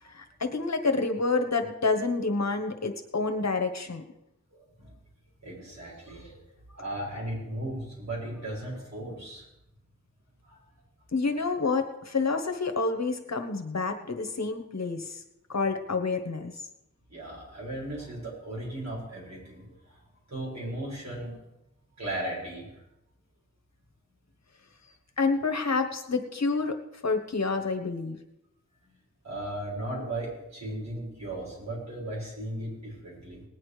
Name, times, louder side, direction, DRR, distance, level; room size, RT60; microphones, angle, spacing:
voice 1, 0.1-4.0 11.1-15.2 15.5-16.5 25.2-26.8 27.0-28.2, left 4 dB, 60° left, 6 dB, 1.4 m, -28 dB
voice 2, 5.4-6.4 6.7-9.4 10.5-10.6 17.1-20.0 20.3-21.4 22.0-22.7 29.2-33.4, right 1 dB, 60° right, -4 dB, 6.4 m, -36 dB
19.5 x 8.7 x 5.0 m, 0.90 s
wide cardioid pair, 60°, 30 cm